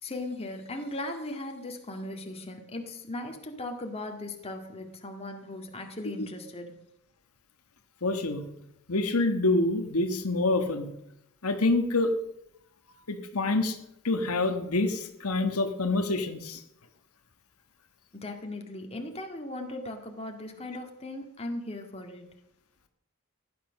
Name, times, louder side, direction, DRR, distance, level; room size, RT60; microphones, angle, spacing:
voice 1, 0.0-6.8 18.2-22.4, left 1 dB, 30° left, 3 dB, 1.9 m, -38 dB
voice 2, 8.0-8.5 8.9-10.9 11.4-12.1 13.1-13.8 14.0-16.6, left 2 dB, 85° left, 6 dB, 1.4 m, -26 dB
15.5 x 10.5 x 6.4 m, 0.83 s
head